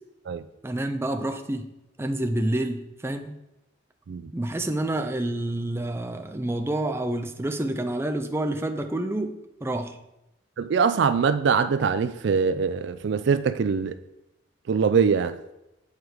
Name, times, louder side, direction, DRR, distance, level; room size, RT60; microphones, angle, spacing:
voice 1, 0.6-1.7 2.0-3.4 4.3-9.3 9.6-10.0, right 1 dB, 15° right, 0.5 m, -28 dB
voice 2, 10.6-14.0 14.7-15.4, right 6 dB, 65° right, 0.4 m, -23 dB
8.3 x 4.9 x 4.6 m
head